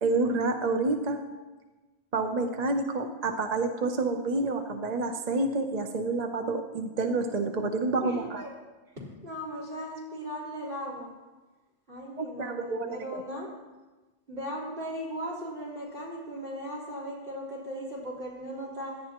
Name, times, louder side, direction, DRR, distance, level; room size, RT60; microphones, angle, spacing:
voice 1, 0.0-1.2 2.1-8.4 12.2-13.2, right 3 dB, 45° right, 5 dB, 0.7 m, -28 dB
voice 2, 8.0-8.5 8.9-11.1 11.9-13.5 14.3-19.0, equal, 60° right, -7 dB, 4.2 m, -37 dB
17.5 x 11.0 x 3.0 m, 1.2 s
omnidirectional pair, 1.2 m